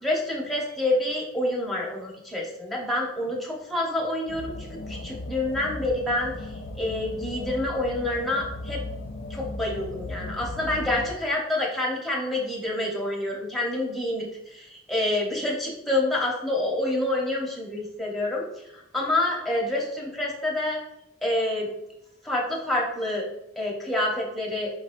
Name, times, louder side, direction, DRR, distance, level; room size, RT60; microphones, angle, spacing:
voice 1, 0.0-4.6 4.9-6.3 6.7-8.8 9.3-18.4 18.7-20.8 21.2-21.7 22.2-23.2 23.6-24.7, left 1 dB, ahead, -3 dB, 0.9 m, -27 dB
ambient noise, 4.3-11.1, left 2 dB, 75° left, 0.5 m, -37 dB
4.8 x 4.1 x 2.6 m, 0.85 s
head